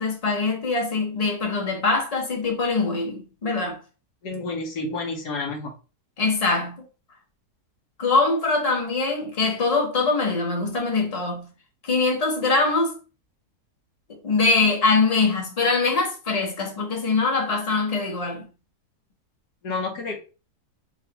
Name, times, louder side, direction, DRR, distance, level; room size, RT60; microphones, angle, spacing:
voice 1, 0.0-3.8 6.2-6.8 8.0-11.5 11.8-13.0 14.1-18.4, left 3 dB, 30° left, 0.9 m, -23 dB
voice 2, 4.2-5.7 19.6-20.2, left 3 dB, 80° left, 1.6 m, -29 dB
5.1 x 2.6 x 2.9 m
omnidirectional pair, 1.7 m